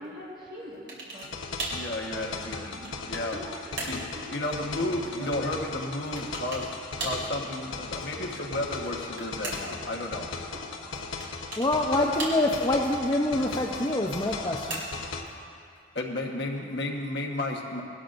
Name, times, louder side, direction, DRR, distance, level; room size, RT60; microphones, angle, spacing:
voice 1, 0.0-1.5 2.1-2.4 2.7-4.4 4.7-5.5 8.2-8.4 8.7-8.8 9.2-9.3 9.7-9.8 10.5-11.1 11.7-12.1, equal, 45° right, -7 dB, 1.9 m, -44 dB
sound 1, 0.9-1.3 1.6-1.9 2.5-3.3 3.8-4.1 6.2-6.7 7.0-7.3 8.7-9.8 11.2-11.7 12.2-12.7 14.2-15.1, right 2 dB, 60° right, 2.7 m, -37 dB
sound 2, 1.1-15.2, left 4 dB, 80° left, 1.0 m, -38 dB
voice 2, 1.7-2.8 3.1-3.4 3.8-4.0 4.3-10.3 15.9-17.8, left 1 dB, 60° left, 0 dB, 1.3 m, -33 dB
voice 3, 11.6-14.8, left 1 dB, 20° left, -1 dB, 0.6 m, -26 dB
19.0 x 12.5 x 2.6 m, 2.3 s
head